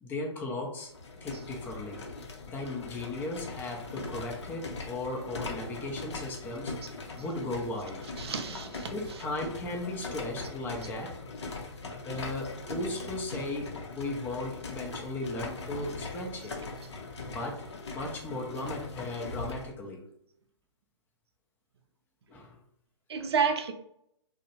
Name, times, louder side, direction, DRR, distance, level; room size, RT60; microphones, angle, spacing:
voice 1, 0.0-0.9 1.2-2.0 2.5-6.7 7.2-8.0 8.9-11.1 11.9-16.5 17.3-17.6 17.9-20.0 22.3-22.6 23.1-23.3, left 2 dB, 15° left, 0.5 m, -36 dB
sound 1, 0.8-19.7, left 3 dB, 65° left, 0.6 m, -41 dB
voice 2, 8.2-9.3 23.1-23.7, right 6 dB, 55° right, 0.5 m, -31 dB
2.5 x 2.0 x 2.8 m
figure-of-eight pair, 125°, 16 cm